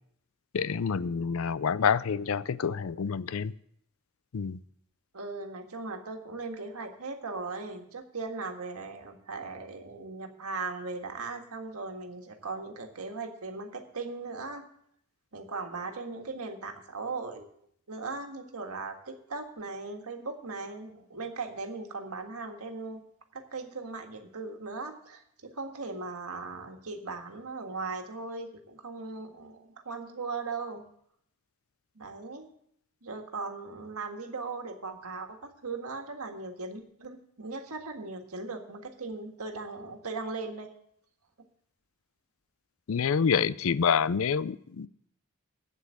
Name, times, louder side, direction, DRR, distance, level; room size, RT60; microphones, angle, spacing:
voice 1, 0.5-3.5 4.3-4.6 42.9-44.9, left 6 dB, 70° left, 18 dB, 0.4 m, -27 dB
voice 2, 5.1-14.7 15.3-17.5 17.9-23.0 23.3-30.8 31.9-32.5 33.0-40.7, right 3 dB, 85° right, 4 dB, 1.7 m, -38 dB
8.4 x 8.1 x 8.7 m, 0.70 s
head